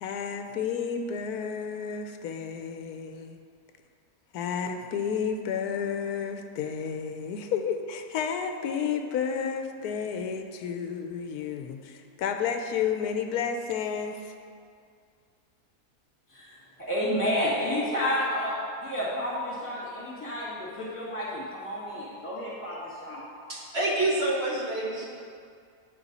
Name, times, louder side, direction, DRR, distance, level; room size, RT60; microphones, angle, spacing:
voice 1, 0.0-3.4 4.3-14.3, left 7 dB, 90° left, 6 dB, 1.1 m, -31 dB
voice 2, 16.3-18.5 18.8-23.3, equal, 20° left, -8 dB, 2.3 m, -30 dB
voice 3, 23.5-25.1, right 2 dB, 45° right, -5 dB, 1.3 m, -27 dB
9.9 x 5.3 x 4.1 m, 2.2 s
omnidirectional pair, 1.6 m